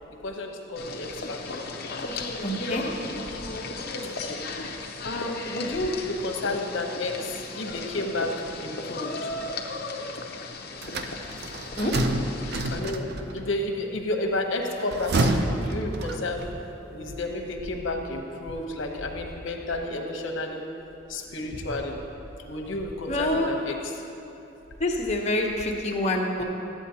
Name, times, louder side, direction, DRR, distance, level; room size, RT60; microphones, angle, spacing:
voice 1, 0.2-1.6 2.2-2.3 2.7-3.4 4.0-4.4 5.0-8.3 8.6-9.3 12.7-16.5 16.9-20.6 21.1-22.0 22.5-23.9, left 2 dB, 75° left, 2 dB, 0.9 m, -31 dB
sound 1, 0.8-12.8, left 3 dB, 55° left, 0.7 m, -36 dB
voice 2, 2.4-2.8 11.8-11.9 23.1-23.5 24.8-26.4, left 1 dB, 35° left, -1 dB, 0.9 m, -26 dB
sound 2, 10.8-13.4 14.7-16.5, right 2 dB, 60° right, 0.5 m, -28 dB
12.5 x 8.4 x 2.8 m, 2.9 s
head